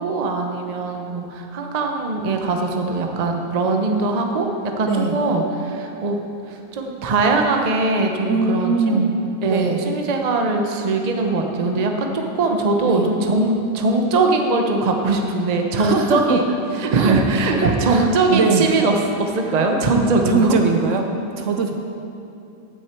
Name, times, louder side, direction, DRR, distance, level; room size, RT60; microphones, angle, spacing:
voice 1, 0.0-6.2 6.5-9.0 9.4-16.4 16.8-20.5, right 3 dB, 35° right, 3 dB, 0.7 m, -21 dB
voice 2, 4.8-5.2 8.2-9.1 9.5-9.8 12.8-13.1 15.8-16.4 16.7-17.2 17.6-18.7 20.2-21.1 21.4-21.7, right 4 dB, 60° right, 4 dB, 1.0 m, -21 dB
15.0 x 6.6 x 4.5 m, 2.7 s
omnidirectional pair, 1.6 m